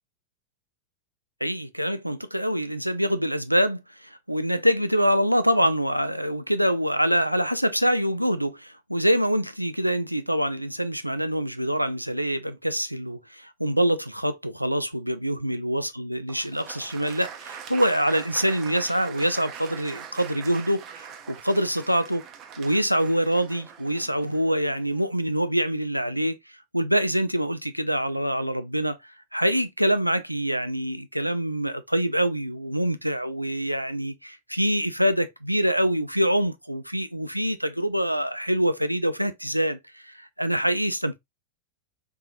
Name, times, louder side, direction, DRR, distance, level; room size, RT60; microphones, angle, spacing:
voice 1, 1.4-22.2 22.6-26.4 26.7-41.2, equal, 90° right, 0.3 m, -25 dB
Applause, 16.3-25.2, right 8 dB, 35° right, 0.6 m, -42 dB
3.7 x 2.9 x 2.6 m
figure-of-eight pair, 90°, 0 cm